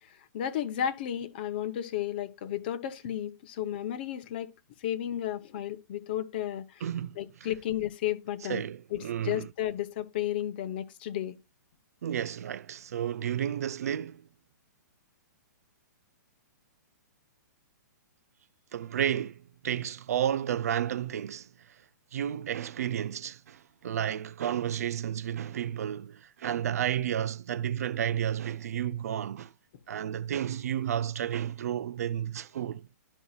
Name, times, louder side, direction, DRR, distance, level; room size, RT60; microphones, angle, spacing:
voice 1, 0.0-4.5 4.8-6.8 7.2-8.6 8.9-11.4, left 11 dB, 30° left, 0.7 m, -33 dB
voice 2, 6.8-7.2 8.4-9.5 12.0-14.3 18.7-21.8 22.1-29.5 29.9-32.9, right 10 dB, 55° right, 0.4 m, -32 dB
12.5 x 5.4 x 2.3 m
hypercardioid pair, 175°, 10 cm